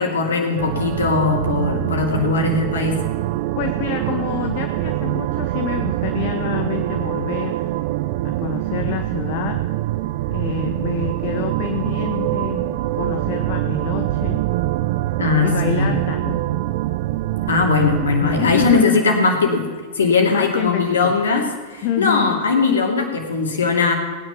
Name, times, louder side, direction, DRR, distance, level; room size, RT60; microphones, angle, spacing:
voice 1, 0.0-3.0 15.2-15.9 17.5-19.7 19.9-23.9, left 4 dB, 65° left, 3 dB, 2.5 m, -19 dB
sound 1, 0.6-18.8, right 16 dB, 50° right, 0.4 m, -24 dB
voice 2, 3.6-7.7 8.2-9.6 10.3-14.4 15.4-16.5 18.2-19.0 20.3-21.1 21.8-22.4, left 10 dB, 45° left, 6 dB, 1.1 m, -27 dB
18.0 x 9.9 x 5.8 m, 1.5 s
figure-of-eight pair, 90°, 0 cm